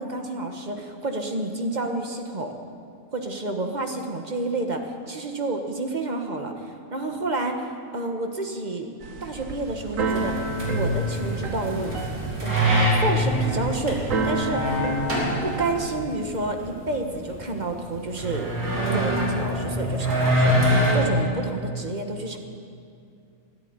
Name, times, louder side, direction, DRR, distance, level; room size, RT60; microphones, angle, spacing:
voice 1, 0.0-2.5 3.1-8.9 9.2-12.0 12.4-14.8 15.4-18.5 18.9-22.4, right 2 dB, 30° right, 4 dB, 1.3 m, -30 dB
Keyboard (musical), 9.0-15.7, right 2 dB, 65° right, 1.5 m, -31 dB
sound 1, 10.1-20.9, equal, 85° right, 3.5 m, -25 dB
14.0 x 11.0 x 9.6 m, 2.4 s
omnidirectional pair, 1.5 m